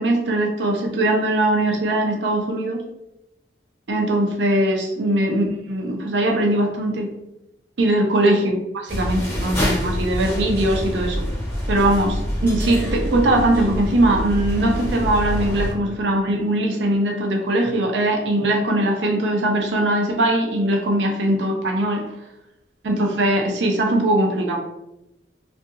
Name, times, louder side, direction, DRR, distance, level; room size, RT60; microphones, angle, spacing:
voice 1, 0.0-2.8 3.9-7.1 7.8-8.5 8.8-11.2 11.7-22.0 22.8-24.6, right 1 dB, 85° right, 2 dB, 0.5 m, -20 dB
sound 1, 8.9-15.7, equal, 15° left, 0.7 m, -26 dB
2.7 x 2.4 x 2.4 m, 0.89 s
head